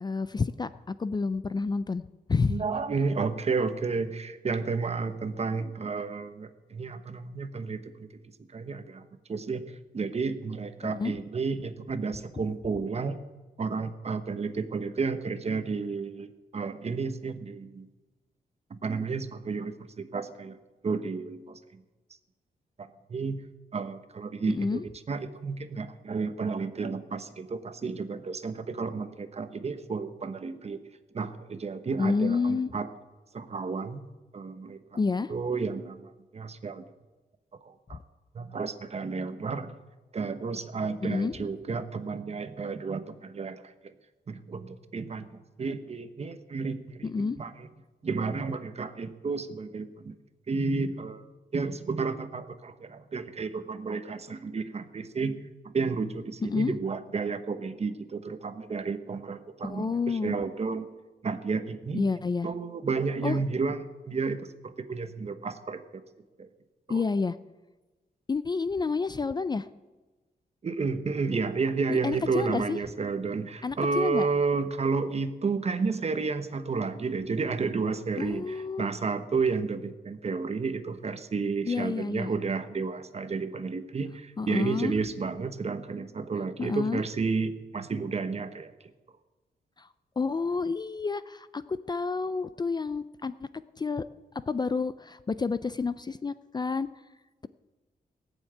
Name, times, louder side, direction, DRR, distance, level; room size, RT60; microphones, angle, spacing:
voice 1, 0.0-2.6 10.8-11.1 24.5-24.8 32.0-32.7 34.9-35.3 41.0-41.3 47.0-47.4 56.4-56.7 59.6-60.4 61.9-62.5 63.2-63.4 66.9-67.4 68.3-69.7 71.9-72.8 73.6-74.3 78.2-78.9 81.7-82.3 84.4-84.9 86.6-87.0 89.8-89.9 90.2-93.3 93.8-94.0 94.5-96.9, left 4 dB, 25° left, 14 dB, 0.4 m, -29 dB
voice 2, 2.4-8.1 8.5-9.7 9.9-13.2 13.6-17.9 18.7-20.6 20.8-21.8 22.8-23.4 23.7-30.8 31.1-32.9 33.3-35.0 35.3-36.8 37.7-38.0 38.3-39.7 40.1-43.7 44.3-47.7 48.0-50.2 50.5-51.3 51.5-55.4 55.6-60.9 61.2-62.0 62.4-63.8 64.1-65.8 66.4-66.5 66.9-67.0 70.6-88.7, right 4 dB, 40° right, 10 dB, 1.0 m, -31 dB
18.0 x 7.3 x 8.8 m, 1.2 s
wide cardioid pair, 120°, 16 cm